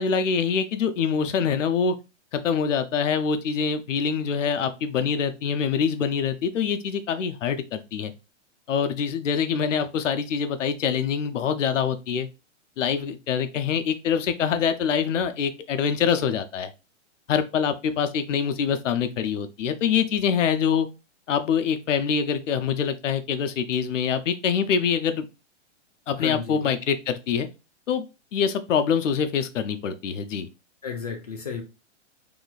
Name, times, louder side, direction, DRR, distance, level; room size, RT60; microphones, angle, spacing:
voice 1, 0.0-2.0 2.3-8.1 8.7-12.3 12.8-16.7 17.3-20.9 21.3-25.3 26.1-27.5 27.9-28.1 28.3-30.5, left 7 dB, 85° left, 9 dB, 0.7 m, -25 dB
voice 2, 26.2-26.7 30.8-31.6, left 6 dB, 35° left, 2 dB, 0.4 m, -33 dB
2.9 x 2.4 x 4.0 m, 0.28 s
hypercardioid pair, 175°, 36 cm